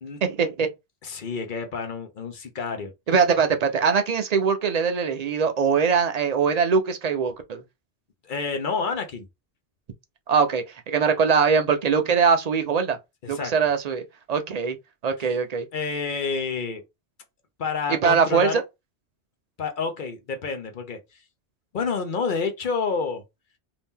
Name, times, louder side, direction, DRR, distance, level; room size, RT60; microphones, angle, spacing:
voice 1, 0.2-0.7 3.1-7.6 10.3-13.0 13.3-14.0 14.3-14.8 15.0-15.7 17.9-18.6, right 6 dB, 55° right, 0.4 m, -22 dB
voice 2, 1.0-2.9 8.3-9.3 13.2-13.5 15.2-15.3 15.7-16.8 17.6-18.6 19.6-21.0 21.7-23.2, left 5 dB, 50° left, 0.8 m, -29 dB
2.8 x 2.6 x 3.5 m
omnidirectional pair, 1.2 m